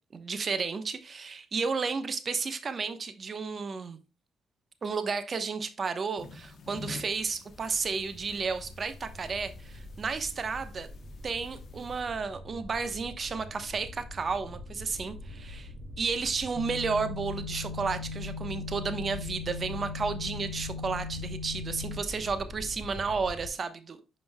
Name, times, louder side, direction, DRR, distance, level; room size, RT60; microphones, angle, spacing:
voice 1, 0.1-4.0 4.8-10.9 11.2-15.7 16.0-24.0, right 5 dB, 40° right, 1.0 m, -32 dB
sound 1, 6.2-12.0, left 4 dB, 55° left, 1.1 m, -48 dB
sound 2, 7.6-23.5, left 2 dB, 60° right, 2.4 m, -44 dB
sound 3, 16.5-22.0, left 4 dB, 75° left, 1.3 m, -38 dB
9.8 x 5.4 x 2.3 m
cardioid pair, 90°, 0 cm